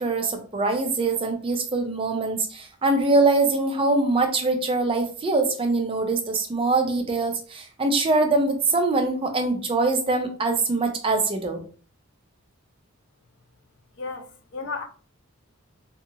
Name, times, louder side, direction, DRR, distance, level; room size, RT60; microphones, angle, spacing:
voice 1, 0.0-11.6, right 3 dB, 25° right, 0.4 m, -23 dB
voice 2, 14.0-14.8, left 4 dB, 55° left, 0.5 m, -33 dB
2.7 x 2.7 x 2.4 m
head